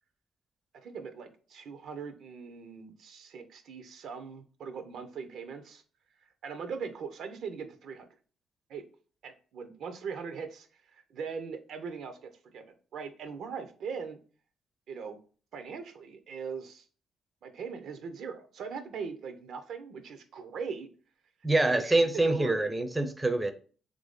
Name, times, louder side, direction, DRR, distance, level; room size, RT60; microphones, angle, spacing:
voice 1, 0.7-5.8 6.4-8.1 8.7-8.8 9.2-10.7 10.9-14.2 14.9-15.2 15.5-16.8 17.4-20.9 21.5-22.6, right 5 dB, 70° right, 0.5 m, -40 dB
voice 2, 21.4-23.5, right 2 dB, 15° right, 0.4 m, -25 dB
3.0 x 2.6 x 3.5 m
cardioid pair, 90°, 0 cm